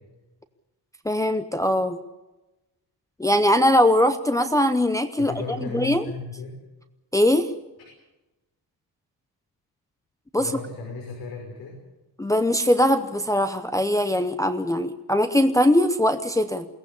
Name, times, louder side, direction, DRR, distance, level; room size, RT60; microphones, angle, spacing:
voice 1, 1.0-2.0 3.2-5.3 5.6-6.0 7.1-7.5 10.3-10.5 12.2-16.7, left 1 dB, 10° left, 7 dB, 0.7 m, -21 dB
voice 2, 5.2-6.5 10.4-11.8, left 3 dB, 65° left, 1 dB, 5.8 m, -35 dB
22.5 x 17.5 x 8.5 m, 1.0 s
cardioid pair, 175°, 40 cm